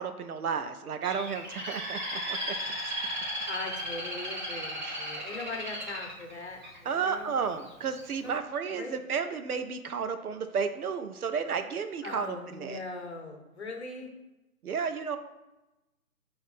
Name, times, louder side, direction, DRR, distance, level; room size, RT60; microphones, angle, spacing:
voice 1, 0.0-2.6 4.8-5.2 6.8-12.8 14.6-15.2, right 6 dB, 75° right, 9 dB, 0.6 m, -32 dB
Bird, 1.0-7.1 7.7-8.0, equal, 30° right, 0.8 m, -36 dB
voice 2, 3.5-7.3 8.2-8.3 8.7-9.0 12.0-14.1, left 3 dB, 45° left, 3 dB, 0.9 m, -40 dB
5.7 x 2.6 x 3.5 m, 0.99 s
figure-of-eight pair, 160°, 45 cm